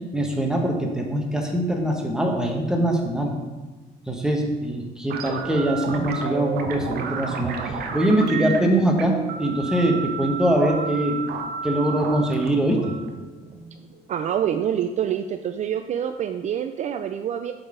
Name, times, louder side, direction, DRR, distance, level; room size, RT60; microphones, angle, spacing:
voice 1, 0.1-3.3 4.1-7.6 7.9-11.2 11.6-12.9, right 1 dB, 5° right, 1 dB, 1.2 m, -23 dB
sound 1, 5.1-14.0, right 5 dB, 65° right, 0.9 m, -32 dB
voice 2, 14.1-17.5, right 9 dB, 45° right, 7 dB, 0.4 m, -26 dB
7.9 x 4.1 x 5.0 m, 1.2 s
cardioid pair, 110°, 17 cm